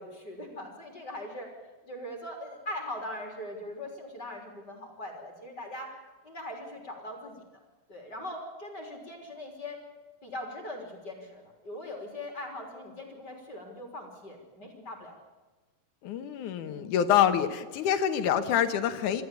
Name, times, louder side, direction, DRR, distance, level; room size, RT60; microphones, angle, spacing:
voice 1, 0.0-1.5 1.9-5.9 6.2-7.4 7.9-9.8 10.2-15.1 16.6-16.9, left 1 dB, 30° left, 2 dB, 3.8 m, -41 dB
voice 2, 16.0-19.2, left 9 dB, 65° left, 9 dB, 2.5 m, -26 dB
26.5 x 14.0 x 8.4 m, 1.3 s
omnidirectional pair, 4.3 m